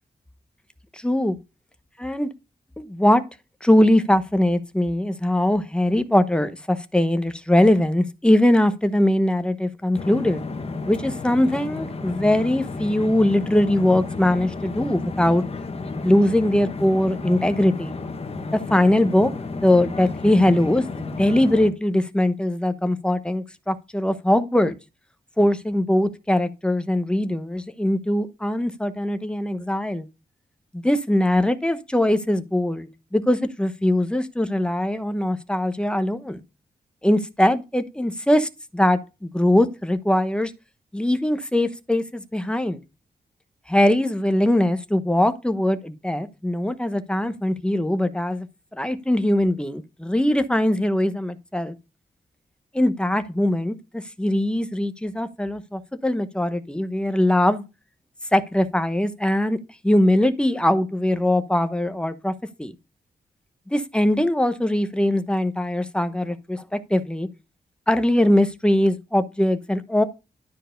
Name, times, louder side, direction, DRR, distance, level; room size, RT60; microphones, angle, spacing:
voice 1, 0.9-1.4 2.0-2.3 2.8-3.2 3.6-10.4 10.9-15.4 16.0-17.9 18.5-19.3 19.6-24.8 25.4-30.1 30.7-36.4 37.0-40.5 40.9-42.8 43.7-48.5 48.7-51.8 52.7-57.7 58.3-59.6 59.8-62.3 62.6-62.7 63.7-67.3 67.9-70.0, left 1 dB, 5° left, 0.9 m, -21 dB
sound 1, 9.9-21.7, left 3 dB, 40° left, 1.2 m, -32 dB
12.5 x 4.6 x 5.1 m
wide cardioid pair, 175°, 16 cm